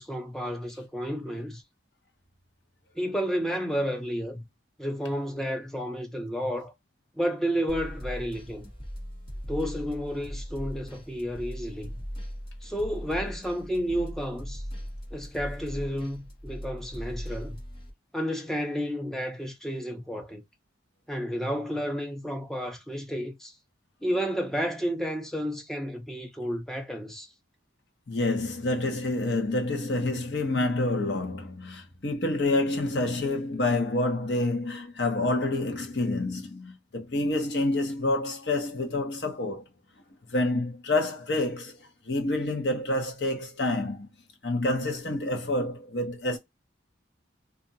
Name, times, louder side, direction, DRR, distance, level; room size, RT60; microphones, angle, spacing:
voice 1, 0.0-1.6 3.0-4.5 4.8-6.7 7.2-8.7 9.5-11.9 12.6-14.6 15.1-17.6 18.1-20.4 21.1-23.5 24.0-27.3, equal, ahead, 0.6 m, -31 dB
sound 1, 7.7-17.9, equal, 25° left, 1.1 m, -39 dB
voice 2, 28.1-39.6 40.3-41.8 42.0-44.1 44.4-46.4, left 2 dB, 60° left, 1.0 m, -28 dB
2.6 x 2.5 x 2.7 m
head